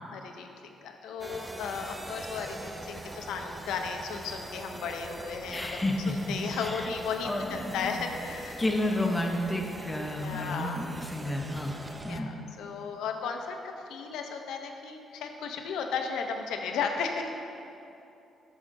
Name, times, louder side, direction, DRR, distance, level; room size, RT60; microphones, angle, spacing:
voice 1, 0.1-8.6 8.9-9.1 10.2-10.8 12.1-17.3, left 5 dB, 85° left, 4 dB, 0.5 m, -35 dB
sound 1, 1.2-12.2, right 2 dB, 15° right, 0.4 m, -43 dB
voice 2, 5.5-6.1 6.6-6.9 7.2-8.1 8.6-12.3, left 1 dB, 15° left, 1 dB, 0.8 m, -31 dB
8.7 x 6.3 x 2.6 m, 2.8 s
cardioid pair, 90°, 0 cm